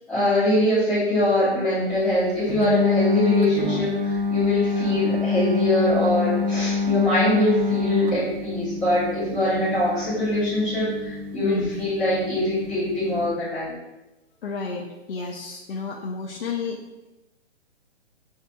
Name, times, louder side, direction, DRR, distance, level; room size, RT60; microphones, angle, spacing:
voice 1, 0.1-13.8, left 1 dB, 5° left, -14 dB, 0.5 m, -23 dB
sound 1, 2.5-13.3, left 4 dB, 50° right, 0.6 m, -26 dB
voice 2, 4.7-5.1 11.4-11.7 14.4-16.8, left 4 dB, 55° left, 0 dB, 0.5 m, -31 dB
6.7 x 2.7 x 2.2 m, 1.0 s
hypercardioid pair, 160°, 34 cm